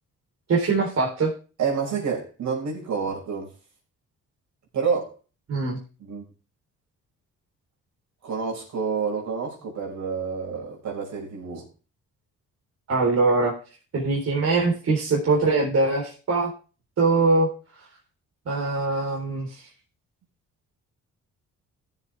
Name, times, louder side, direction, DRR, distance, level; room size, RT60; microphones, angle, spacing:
voice 1, 0.5-1.3 5.5-5.8 12.9-13.5 13.9-16.5 17.0-17.5 18.5-19.5, right 3 dB, 55° right, 4.1 m, -22 dB
voice 2, 1.6-3.5 4.7-5.1 6.0-6.2 8.2-11.7, right 6 dB, 70° right, 5.7 m, -28 dB
15.0 x 7.4 x 3.6 m
cardioid pair, 90°, 30 cm